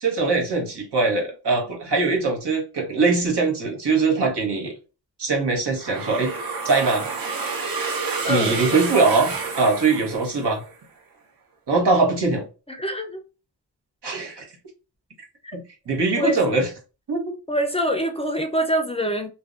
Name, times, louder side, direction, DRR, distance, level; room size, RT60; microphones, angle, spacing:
voice 1, 0.0-4.7 5.2-6.3 6.6-7.1 8.3-10.6 11.7-12.5 14.0-14.4 15.5-16.7 17.1-17.3, right 3 dB, 80° right, 1.0 m, -22 dB
sound 1, 5.8-10.7, right 4 dB, 60° right, 0.7 m, -29 dB
voice 2, 8.2-8.6 12.7-13.2 16.2-16.5 17.5-19.3, equal, 15° left, 0.4 m, -24 dB
2.6 x 2.1 x 2.3 m
cardioid pair, 60°, 40 cm